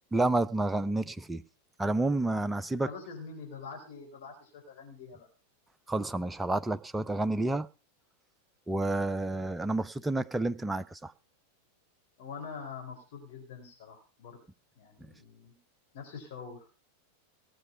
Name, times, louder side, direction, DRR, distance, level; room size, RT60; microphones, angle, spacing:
voice 1, 0.1-1.4 1.8-2.9 5.9-7.7 8.7-11.1, right 2 dB, 5° right, 0.6 m, -29 dB
voice 2, 2.8-5.3 12.2-14.4 14.8-15.6 15.9-16.7, left 5 dB, 50° left, 4.4 m, -45 dB
18.0 x 7.7 x 5.8 m
figure-of-eight pair, 90°, 0 cm